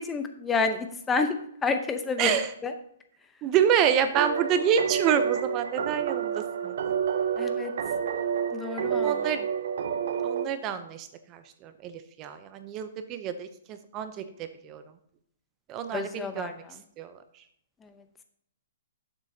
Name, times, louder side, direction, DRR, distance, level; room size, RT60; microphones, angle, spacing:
voice 1, 0.0-1.4 1.6-2.4 2.6-2.7 7.4-7.7 8.5-9.4 15.9-16.7, left 4 dB, 15° left, 7 dB, 0.7 m, -29 dB
voice 2, 2.2-2.5 3.4-6.8 8.9-9.4 10.2-14.8 15.7-16.6 17.0-17.1, right 8 dB, 30° right, 10 dB, 0.7 m, -28 dB
sound 1, 4.1-10.5, right 8 dB, 65° right, 0.7 m, -29 dB
11.5 x 7.5 x 2.8 m, 0.69 s
hypercardioid pair, 140°, 0 cm